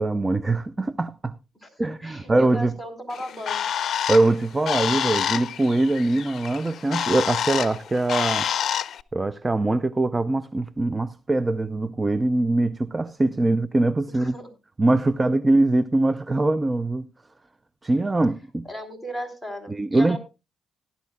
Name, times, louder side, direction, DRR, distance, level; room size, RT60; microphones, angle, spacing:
voice 1, 0.0-1.3 1.8-2.7 4.1-8.5 9.1-14.4 14.8-17.1 17.8-18.6 19.7-20.2, right 2 dB, 20° right, 0.5 m, -22 dB
voice 2, 1.8-3.6 14.1-14.5 18.6-20.2, equal, 5° right, 4.1 m, -36 dB
Bird, 3.1-9.0, left 9 dB, 60° left, 0.6 m, -28 dB
18.0 x 11.5 x 2.2 m
cardioid pair, 90°, 0 cm